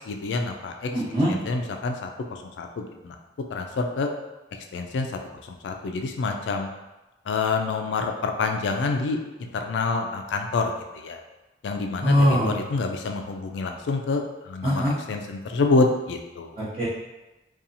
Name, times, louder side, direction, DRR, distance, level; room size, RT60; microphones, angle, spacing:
voice 1, 0.1-0.9 1.3-3.1 3.5-4.1 4.7-5.1 5.6-6.7 7.3-10.7 11.0-11.2 11.6-16.5, left 3 dB, 80° left, 4 dB, 0.3 m, -27 dB
voice 2, 0.9-1.3 12.0-12.5 14.6-14.9 16.6-16.8, equal, 35° right, -13 dB, 0.8 m, -22 dB
2.8 x 2.3 x 2.6 m, 1.0 s
head